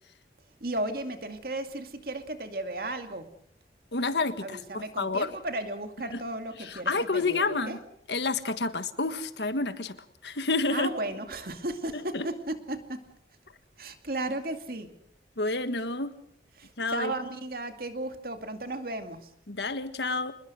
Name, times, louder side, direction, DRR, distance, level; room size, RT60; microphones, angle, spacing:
voice 1, 0.6-3.3 4.4-7.8 10.7-13.0 13.8-14.9 16.6-19.3, right 2 dB, 55° right, 7 dB, 2.4 m, -35 dB
voice 2, 3.9-5.3 6.1-6.2 6.6-7.8 8.1-10.0 10.2-10.9 11.9-12.2 15.4-16.1 16.8-17.1 19.5-20.3, left 3 dB, 75° left, 11 dB, 1.6 m, -29 dB
26.5 x 21.0 x 6.3 m, 0.67 s
head